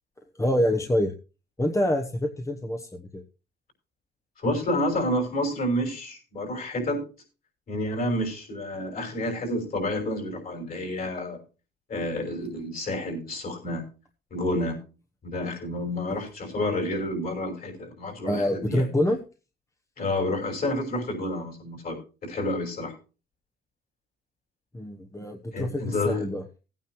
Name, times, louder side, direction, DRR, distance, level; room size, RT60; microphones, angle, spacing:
voice 1, 0.4-1.1 1.6-3.2 16.1-16.2 18.3-19.2 24.7-26.4, left 1 dB, 15° left, 4 dB, 1.0 m, -26 dB
voice 2, 4.4-7.1 7.7-11.4 11.9-13.9 14.3-14.8 15.2-18.9 20.0-22.9 25.5-26.2, left 1 dB, 45° left, 0 dB, 5.8 m, -29 dB
18.0 x 9.2 x 3.1 m, 0.34 s
cardioid pair, 90°, 20 cm